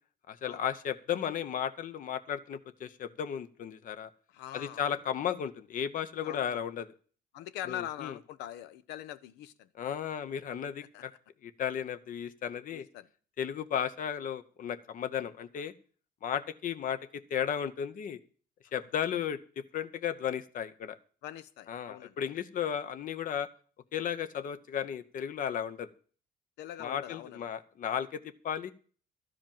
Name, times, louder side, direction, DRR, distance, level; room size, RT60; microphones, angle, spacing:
voice 1, 0.3-4.1 4.5-6.9 7.7-8.1 9.8-11.1 11.4-12.9 13.4-15.7 16.2-18.2 18.7-21.0 21.7-23.5 23.9-25.9 26.8-28.7, left 8 dB, 50° left, 12 dB, 0.8 m, -34 dB
voice 2, 4.3-5.0 6.2-6.6 7.3-9.7 10.9-11.0 12.7-13.1 21.2-22.2 26.6-27.5, left 12 dB, 85° left, 14 dB, 0.8 m, -43 dB
12.0 x 5.1 x 8.9 m, 0.43 s
cardioid pair, 110°, 17 cm